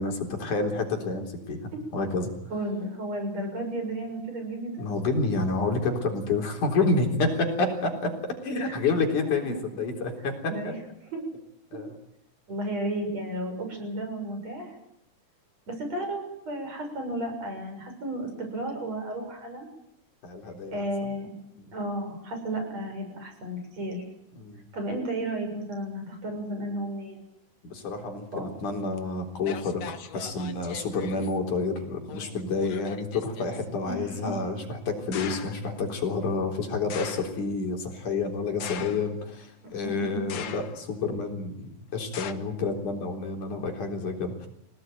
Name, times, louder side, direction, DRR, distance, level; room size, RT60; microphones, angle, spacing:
voice 1, 0.0-1.6 1.9-2.3 4.8-8.1 8.4-10.7 11.7-11.9 20.2-21.1 24.4-24.7 27.6-44.5, left 3 dB, 75° left, 3 dB, 5.3 m, -29 dB
voice 2, 2.5-4.8 8.6-8.8 9.2-9.6 10.5-11.2 12.5-14.8 15.7-19.7 20.7-21.3 21.7-24.0 24.7-27.2 28.3-28.5 33.8-34.3 39.6-40.2, right 1 dB, 55° right, 4 dB, 7.8 m, -33 dB
sound 1, 29.0-29.1 29.4-31.4 32.1-33.7 35.1-35.7 36.9-37.5 38.6-39.3 40.3-41.0 42.1-42.3, left 8 dB, 60° left, 2.3 m, -40 dB
26.5 x 18.0 x 9.3 m, 0.78 s
omnidirectional pair, 3.6 m